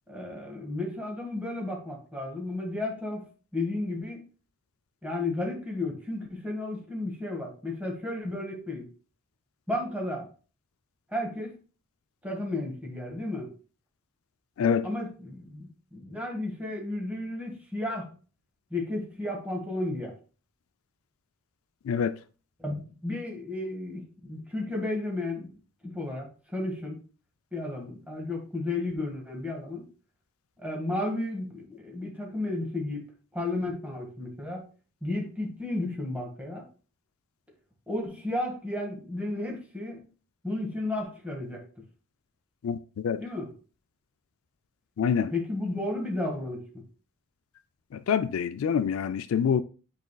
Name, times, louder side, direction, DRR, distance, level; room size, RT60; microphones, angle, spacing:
voice 1, 0.1-3.3 3.5-4.2 5.0-8.9 9.7-10.3 11.1-11.5 12.2-13.5 14.8-18.1 18.7-20.1 22.6-25.5 25.8-26.9 27.5-29.9 30.6-33.1 33.3-34.7 35.0-36.6 37.9-40.0 40.4-41.6 43.2-43.5 45.3-46.8, left 2 dB, 5° right, 1.7 m, -33 dB
voice 2, 45.0-45.3 47.9-49.6, left 7 dB, 75° left, 0.4 m, -25 dB
8.5 x 5.1 x 2.3 m
head